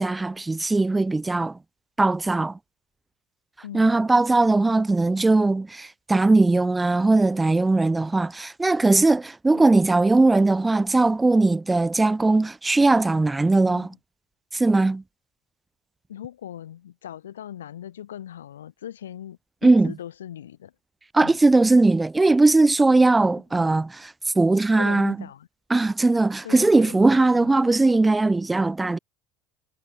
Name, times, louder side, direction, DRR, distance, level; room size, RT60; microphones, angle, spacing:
voice 1, 0.0-1.6 2.0-2.6 3.7-13.9 14.5-15.0 19.6-19.9 21.1-25.2 25.7-29.0, right 2 dB, 15° right, 0.7 m, -19 dB
voice 2, 3.6-4.0 9.5-9.8 13.7-13.9 16.1-20.7 21.2-21.4 24.8-25.5 26.4-27.1 27.3-27.6, left 10 dB, 80° left, 1.8 m, -40 dB
hypercardioid pair, 70°, 0 cm